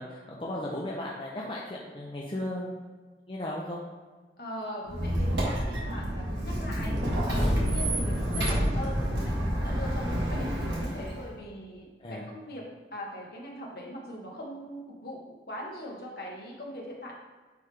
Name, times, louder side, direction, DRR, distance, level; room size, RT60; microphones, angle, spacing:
voice 1, 0.0-2.7 3.3-3.8 7.4-7.6 12.0-12.3, left 1 dB, 30° left, -3 dB, 0.6 m, -36 dB
voice 2, 4.4-7.0 7.2-17.1, equal, 55° left, -2 dB, 1.4 m, -41 dB
Squeak, 4.9-11.3, equal, 85° right, 1.6 m, -28 dB
9.2 x 3.4 x 3.4 m, 1.4 s
head